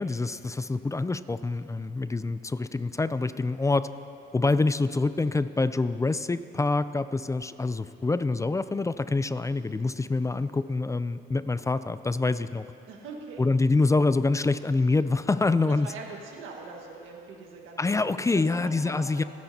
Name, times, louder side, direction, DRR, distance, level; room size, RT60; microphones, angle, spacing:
voice 1, 0.0-3.9 4.3-12.7 13.4-15.9 17.8-19.2, left 3 dB, 15° left, 13 dB, 0.4 m, -26 dB
voice 2, 12.9-13.4 15.6-17.8 18.3-19.2, right 4 dB, 85° right, 0 dB, 1.7 m, -42 dB
27.5 x 10.5 x 2.8 m, 2.6 s
cardioid pair, 90°, 20 cm